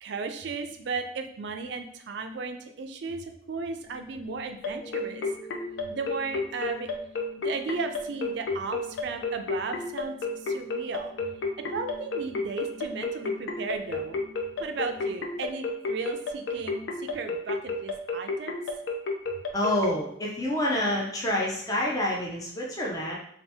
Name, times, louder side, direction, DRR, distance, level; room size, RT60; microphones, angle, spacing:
voice 1, 0.0-5.3 5.9-6.9 7.4-10.1 10.4-11.1 11.6-14.2 14.6-18.6, right 4 dB, 70° right, 6 dB, 0.4 m, -35 dB
sound 1, 3.8-15.9, left 3 dB, 65° left, 1.4 m, -50 dB
sound 2, 4.6-19.9, left 3 dB, 85° left, 0.5 m, -31 dB
voice 2, 19.5-23.2, left 1 dB, 20° left, -3 dB, 0.4 m, -28 dB
2.7 x 2.5 x 3.3 m, 0.67 s
head